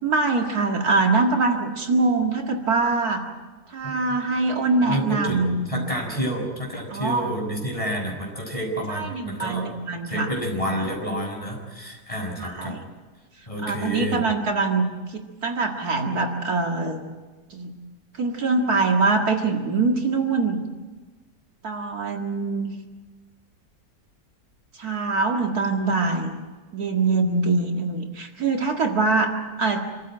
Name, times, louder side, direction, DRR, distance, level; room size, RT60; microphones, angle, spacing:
voice 1, 0.0-3.2 3.7-5.7 6.9-7.3 8.9-10.3 10.6-10.9 12.4-12.8 13.6-17.0 17.5-17.7 18.2-20.6 21.6-22.7 24.8-26.4 26.7-29.9, right 3 dB, 70° right, 2 dB, 2.5 m, -23 dB
voice 2, 4.9-9.7 10.0-12.7 13.5-14.2, equal, 20° left, 0 dB, 6.3 m, -29 dB
26.5 x 14.5 x 9.1 m, 1.3 s
omnidirectional pair, 1.7 m